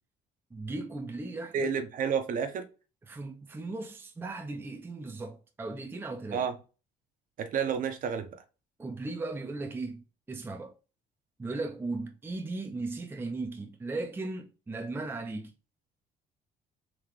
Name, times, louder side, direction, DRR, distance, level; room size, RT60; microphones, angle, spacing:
voice 1, 0.5-1.7 3.1-6.5 8.8-10.7 11.4-15.5, right 3 dB, 15° right, 0.5 m, -37 dB
voice 2, 1.5-2.7 6.3-6.6 7.4-8.4, right 6 dB, 55° right, 0.7 m, -30 dB
3.7 x 2.8 x 3.2 m
cardioid pair, 110°, 17 cm